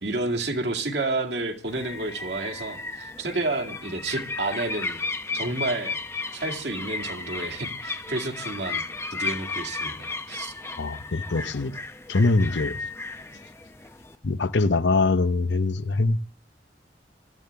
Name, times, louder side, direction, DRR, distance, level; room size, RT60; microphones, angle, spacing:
voice 1, 0.0-5.0 5.3-6.0 6.3-8.8 9.1-10.5, right 2 dB, 70° right, 2.2 m, -30 dB
sound 1, 1.7-14.2, left 3 dB, 15° left, 0.7 m, -34 dB
voice 2, 10.8-11.8 12.1-12.8 14.2-16.2, left 3 dB, 85° left, 0.8 m, -23 dB
23.5 x 14.0 x 3.5 m
head